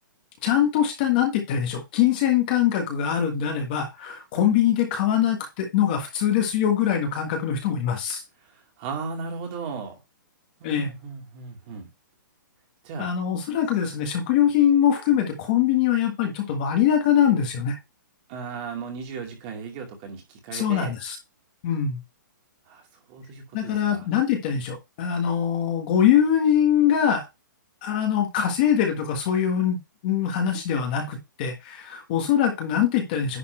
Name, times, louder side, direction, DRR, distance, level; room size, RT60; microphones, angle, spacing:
voice 1, 0.4-8.2 10.6-10.9 13.0-17.8 20.5-21.2 21.6-22.0 23.5-27.3 27.8-29.8 30.0-33.4, left 9 dB, 25° left, 1.5 m, -23 dB
voice 2, 8.8-9.9 10.6-11.9 12.8-13.1 18.3-20.9 22.7-24.1, right 5 dB, 25° right, 2.2 m, -36 dB
10.5 x 4.3 x 4.4 m
hypercardioid pair, 180°, 11 cm